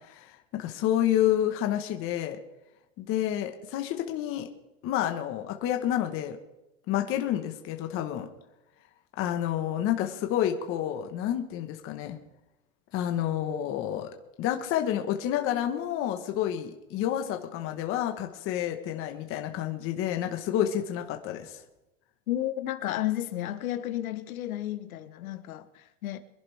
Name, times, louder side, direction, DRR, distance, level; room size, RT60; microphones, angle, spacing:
voice 1, 0.1-2.4 3.0-4.5 4.8-6.4 6.9-8.3 9.2-12.2 12.9-14.1 14.4-21.6, left 11 dB, 30° left, 1.3 m, -29 dB
voice 2, 22.3-26.2, left 13 dB, 90° left, 1.3 m, -32 dB
24.5 x 11.0 x 3.5 m
supercardioid pair, 150°, 41 cm